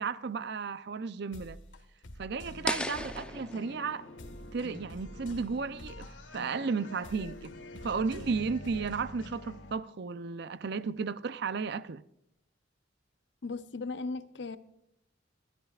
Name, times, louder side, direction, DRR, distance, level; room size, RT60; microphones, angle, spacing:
voice 1, 0.0-1.6 2.2-4.1 4.5-7.6 7.8-12.0, right 5 dB, 60° right, 0.6 m, -34 dB
sound 1, 1.3-9.8, left 1 dB, 85° left, 1.5 m, -46 dB
sound 2, 2.7-5.7, left 1 dB, 5° left, 0.7 m, -38 dB
voice 2, 13.4-14.6, left 3 dB, 65° left, 0.8 m, -37 dB
22.0 x 13.0 x 2.4 m
head